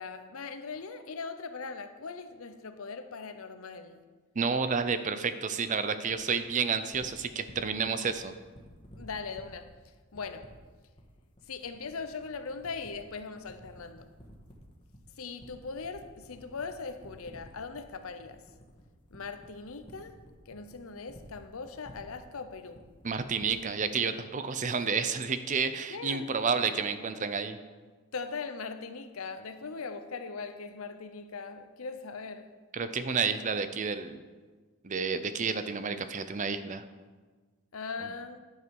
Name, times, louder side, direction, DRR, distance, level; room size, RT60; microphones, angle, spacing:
voice 1, 0.0-4.0 9.0-9.7 10.1-10.6 11.5-14.1 15.2-18.5 19.1-20.2 20.5-22.9 25.9-26.3 28.1-32.5 37.7-38.4, left 4 dB, 75° left, 0.7 m, -40 dB
voice 2, 4.4-8.3 23.0-27.6 32.7-34.2 34.8-36.8, right 5 dB, 35° right, 0.5 m, -30 dB
sound 1, 6.1-23.8, equal, 25° left, 1.5 m, -53 dB
11.0 x 7.4 x 4.7 m
head